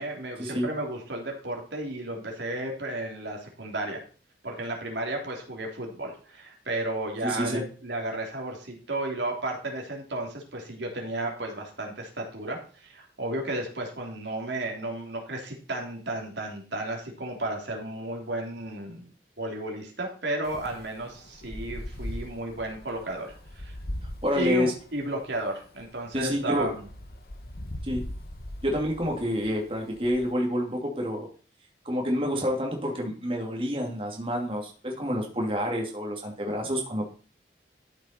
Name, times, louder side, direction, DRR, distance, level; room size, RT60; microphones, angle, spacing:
voice 1, 0.0-4.0 4.4-19.1 19.4-23.3 23.5-23.8 24.3-26.8, right 1 dB, 75° right, 1 dB, 3.2 m, -33 dB
voice 2, 7.2-7.6 24.2-24.7 26.1-26.7 27.8-28.0 28.6-31.3 31.8-37.0, equal, 30° right, 0 dB, 2.3 m, -28 dB
Wind, 20.4-30.3, left 1 dB, 55° left, 1.5 m, -40 dB
13.0 x 7.1 x 4.4 m, 0.40 s
head